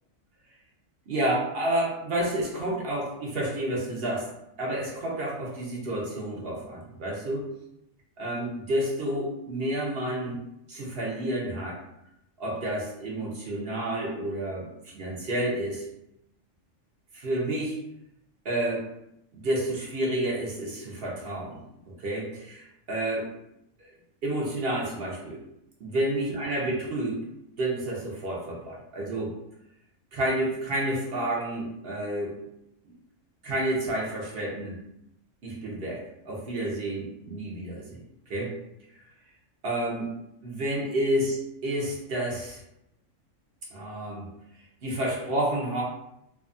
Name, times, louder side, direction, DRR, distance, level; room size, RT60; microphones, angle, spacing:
voice 1, 1.1-7.4 8.2-10.4 10.7-11.8 12.4-15.9 17.1-17.8 18.4-18.9 19.3-23.2 23.8-23.9 24.2-25.4 25.8-27.2 27.6-29.3 30.1-32.3 33.4-34.7 35.4-38.0 38.3-38.5 39.6-40.1 40.4-42.6 43.7-44.3 44.8-45.8, right 1 dB, 55° right, -3 dB, 0.8 m, -30 dB
2.7 x 2.3 x 2.5 m, 0.80 s
omnidirectional pair, 1.3 m